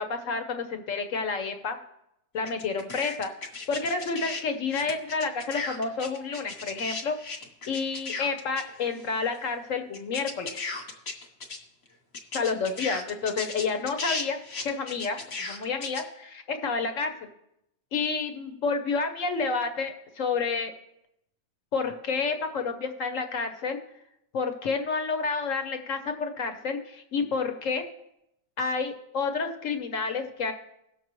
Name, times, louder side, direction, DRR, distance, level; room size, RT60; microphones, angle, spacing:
voice 1, 0.0-1.8 2.3-3.3 3.7-7.2 7.7-10.6 12.3-14.4 14.6-17.3 17.9-20.7 21.7-23.8 24.3-27.8 28.6-30.5, left 4 dB, 55° left, 7 dB, 0.9 m, -29 dB
sound 1, 2.4-4.4 4.7-9.1 9.3-9.4 9.9-11.6 11.9-12.0 12.1-16.0, left 3 dB, 35° left, 1.2 m, -35 dB
18.0 x 6.6 x 3.1 m, 0.81 s
omnidirectional pair, 2.2 m